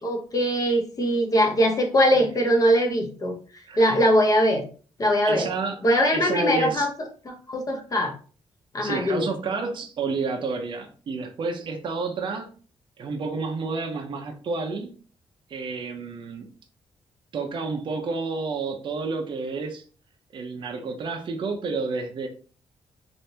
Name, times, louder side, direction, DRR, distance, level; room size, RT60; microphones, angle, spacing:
voice 1, 0.0-3.3 3.8-4.6 5.0-5.5 5.8-6.9 7.2-8.1 8.7-9.3, equal, 35° left, 2 dB, 0.8 m, -21 dB
voice 2, 3.7-4.0 5.2-5.8 6.1-6.9 8.8-12.5 13.0-14.9 15.5-16.5 17.3-19.8 20.3-22.3, right 4 dB, 50° right, 3 dB, 0.6 m, -30 dB
3.3 x 2.6 x 2.8 m, 0.40 s
cardioid pair, 115°, 11 cm